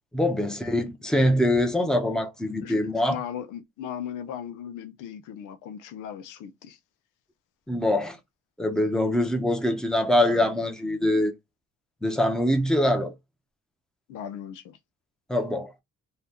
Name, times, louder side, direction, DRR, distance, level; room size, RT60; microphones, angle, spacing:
voice 1, 0.1-3.1 7.7-8.2 8.6-11.3 12.0-13.1 15.3-15.7, left 1 dB, ahead, 0.8 m, -24 dB
voice 2, 2.6-6.8 14.1-14.8, left 9 dB, 85° left, 0.6 m, -37 dB
2.7 x 2.3 x 3.4 m
cardioid pair, 90°, 30 cm